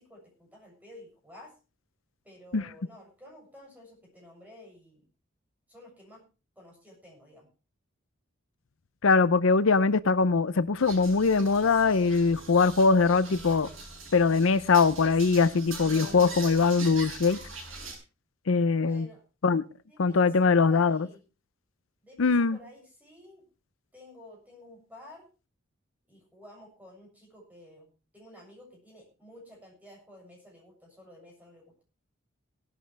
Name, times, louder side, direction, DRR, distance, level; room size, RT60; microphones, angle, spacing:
voice 1, 0.0-1.5 2.2-5.1 5.7-6.2 6.6-7.5 18.7-19.2 19.9-21.2 22.0-23.5 23.9-25.3 26.1-31.8, left 1 dB, 10° right, 7.3 m, -52 dB
voice 2, 9.0-13.7 14.1-17.4 18.5-19.1 19.4-19.6 20.0-21.1 22.2-22.6, left 4 dB, 80° left, 0.6 m, -22 dB
sound 1, 10.8-18.0, right 3 dB, 80° right, 7.2 m, -42 dB
18.5 x 12.0 x 3.4 m
head